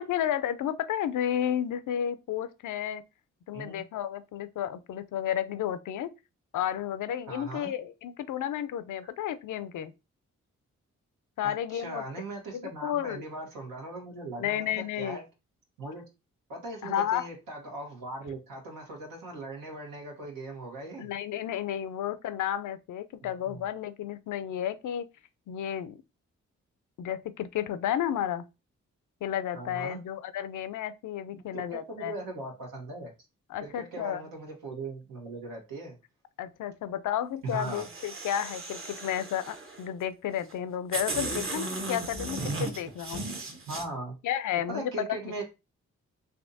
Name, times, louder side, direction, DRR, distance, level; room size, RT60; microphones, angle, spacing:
voice 1, 0.0-3.0 3.5-6.1 6.5-9.9 11.4-12.1 12.5-13.2 14.4-15.2 16.8-17.3 21.0-25.1 25.5-26.0 27.0-28.4 29.2-32.1 33.5-34.2 36.4-43.2 44.2-45.3, left 10 dB, 70° left, 0.5 m, -32 dB
voice 2, 7.3-7.7 11.4-15.2 15.8-16.0 16.5-21.1 23.2-23.6 29.5-30.0 31.3-33.1 33.6-36.0 37.4-37.9 41.2-41.4 43.7-44.1 44.7-45.5, right 2 dB, 80° right, 1.3 m, -39 dB
sound 1, 37.5-39.8 40.5-40.6 40.9-43.8, right 2 dB, 40° right, 1.0 m, -36 dB
3.4 x 2.7 x 2.6 m
supercardioid pair, 45°, 33 cm